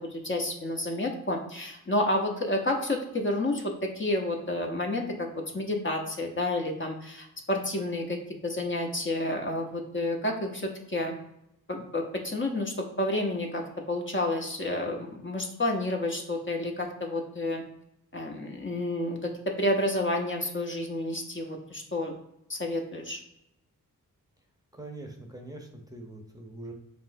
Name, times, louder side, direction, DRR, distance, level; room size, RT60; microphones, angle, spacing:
voice 1, 0.0-5.3 5.5-11.1 11.7-17.6 18.1-22.1 22.5-23.2, left 1 dB, 35° left, 1 dB, 0.8 m, -30 dB
voice 2, 24.7-26.7, right 2 dB, 10° right, 2 dB, 0.8 m, -43 dB
5.2 x 2.9 x 2.6 m, 0.83 s
cardioid pair, 55°, 34 cm